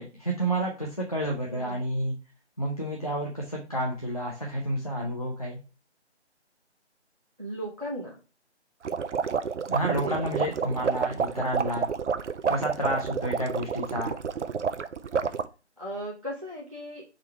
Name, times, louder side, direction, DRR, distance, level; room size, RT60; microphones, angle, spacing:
voice 1, 0.0-2.2 2.6-5.6 9.7-11.9 12.5-14.1, right 1 dB, 35° left, -1 dB, 0.5 m, -30 dB
voice 2, 7.4-8.2 9.9-10.2 10.6-10.8 15.8-17.0, right 1 dB, 30° right, -4 dB, 0.5 m, -36 dB
sound 1, 8.8-15.5, right 6 dB, 80° right, 0.5 m, -29 dB
3.8 x 3.2 x 4.2 m, 0.33 s
figure-of-eight pair, 160°, 35 cm